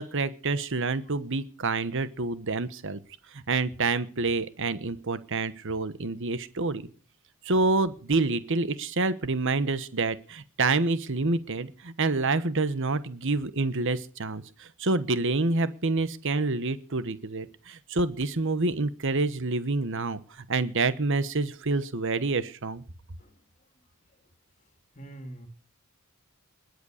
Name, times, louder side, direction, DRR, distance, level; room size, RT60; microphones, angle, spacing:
voice 1, 0.0-3.0 3.3-6.9 7.4-22.8, right 3 dB, 60° right, 14 dB, 1.2 m, -27 dB
voice 2, 24.9-25.5, right 1 dB, 35° left, 6 dB, 3.0 m, -43 dB
21.0 x 8.3 x 6.6 m, 0.42 s
head